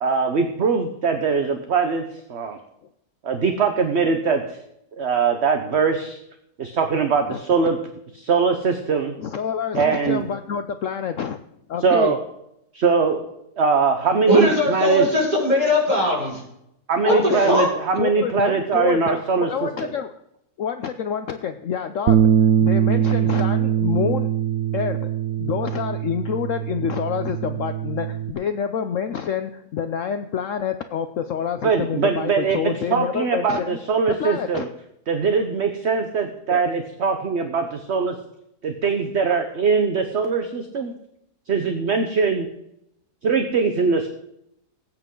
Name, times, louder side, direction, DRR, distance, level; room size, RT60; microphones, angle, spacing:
voice 1, 0.0-2.0 2.3-2.6 3.2-4.6 5.0-6.2 6.6-7.8 8.1-9.1 9.7-10.2 11.8-12.2 12.7-13.2 13.6-15.0 16.9-19.7 31.6-34.7 35.1-38.2 38.6-40.9 41.5-42.5 43.2-44.1, right 5 dB, 45° right, 6 dB, 1.1 m, -21 dB
voice 2, 9.2-11.4 11.7-12.1 17.1-17.5 18.0-20.1 20.6-22.4 22.6-24.3 24.7-33.8 34.2-34.7 36.5-36.6, left 7 dB, 60° left, 9 dB, 0.9 m, -27 dB
voice 3, 14.3-16.4 17.0-17.7, left 1 dB, 25° right, -5 dB, 5.7 m, -20 dB
Bass guitar, 22.1-28.3, right 9 dB, 70° right, 0.9 m, -22 dB
19.0 x 9.0 x 3.9 m, 0.79 s
omnidirectional pair, 1.8 m